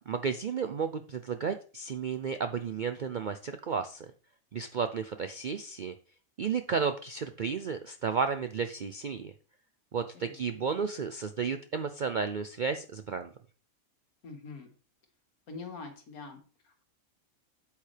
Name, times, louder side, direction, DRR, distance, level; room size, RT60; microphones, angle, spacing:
voice 1, 0.1-4.1 4.5-5.9 6.4-9.3 9.9-13.3, right 6 dB, 65° right, 9 dB, 0.4 m, -33 dB
voice 2, 10.1-10.6 14.2-14.7 15.5-16.8, left 4 dB, 90° left, 5 dB, 2.0 m, -45 dB
8.5 x 8.3 x 3.3 m, 0.38 s
omnidirectional pair, 1.5 m